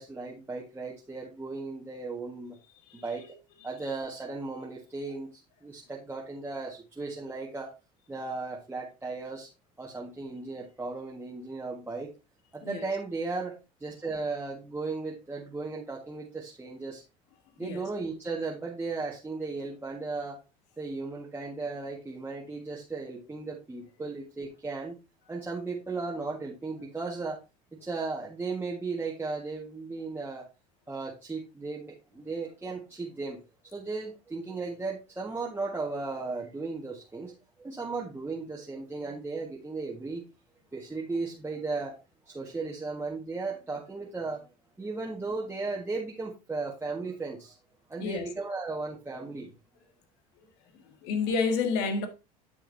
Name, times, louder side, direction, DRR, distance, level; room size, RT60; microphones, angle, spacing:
voice 1, 0.0-2.5 2.9-3.3 3.6-7.7 8.1-9.5 9.8-12.1 12.5-17.0 17.6-20.4 20.8-24.9 25.3-27.4 27.8-30.5 30.9-33.4 33.7-40.2 40.7-42.0 42.2-44.5 44.8-47.6 47.9-49.5, right 3 dB, 10° right, 1.5 m, -36 dB
voice 2, 2.9-3.3 12.6-12.9 17.6-17.9 24.0-24.1 48.0-48.3 50.4-52.1, left 4 dB, 70° left, 1.7 m, -31 dB
9.5 x 6.4 x 2.7 m
supercardioid pair, 100°, 18 cm